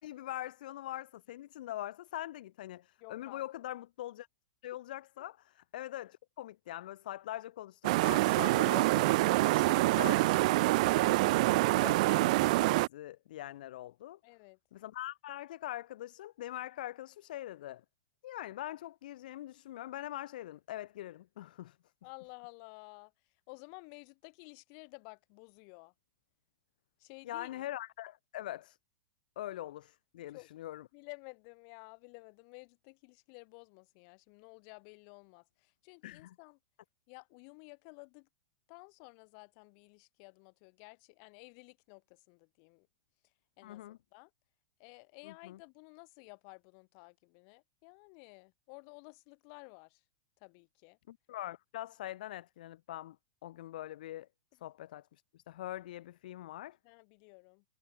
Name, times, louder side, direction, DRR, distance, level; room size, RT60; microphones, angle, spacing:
voice 1, 0.0-4.3 4.6-10.4 11.0-14.2 14.7-17.8 18.2-21.8 27.2-28.8 29.4-30.8 36.0-36.3 43.6-44.0 45.2-45.6 51.1-53.2 53.4-54.3 54.6-56.8, left 14 dB, 65° left, 2.9 m, -43 dB
voice 2, 3.0-3.4 9.7-10.2 14.2-14.6 22.0-23.1 23.5-25.9 27.0-27.6 30.3-30.5 30.9-36.6 37.1-38.3 38.7-42.9 43.6-44.3 44.8-50.0 50.4-51.0 56.8-57.6, left 40 dB or more, 40° left, 6.1 m, -53 dB
water flow, 7.8-12.9, right 20 dB, 50° right, 0.4 m, -26 dB
supercardioid pair, 160°, 5 cm